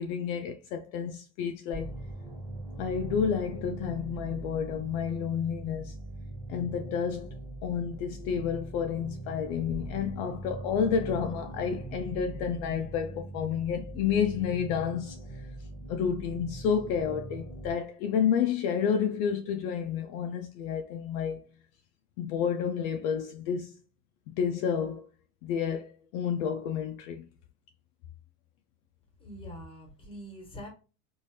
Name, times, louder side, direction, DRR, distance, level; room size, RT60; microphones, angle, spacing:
voice 1, 0.0-1.9 2.8-5.9 6.5-7.3 7.6-15.2 15.9-21.5 22.2-23.7 24.3-25.1 25.4-27.3, left 7 dB, 60° left, 0.5 m, -30 dB
sound 1, 1.7-17.7, right 2 dB, 15° right, 1.2 m, -41 dB
voice 2, 29.2-30.7, equal, 10° left, 1.3 m, -44 dB
3.1 x 2.7 x 2.7 m
supercardioid pair, 130°, 47 cm